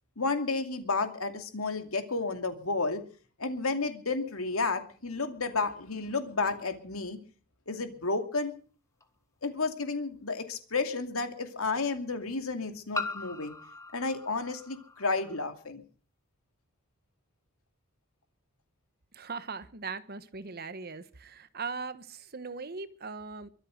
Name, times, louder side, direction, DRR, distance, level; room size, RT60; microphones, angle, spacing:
voice 1, 0.2-3.0 3.4-7.2 7.7-8.5 9.4-13.5 13.9-15.8, left 3 dB, 80° left, 2.6 m, -31 dB
sound 1, 9.0-9.1 10.7-10.8 12.9-15.4, left 3 dB, 15° left, 1.6 m, -39 dB
voice 2, 19.1-23.5, right 4 dB, 45° right, 1.2 m, -39 dB
23.5 x 8.1 x 6.5 m
head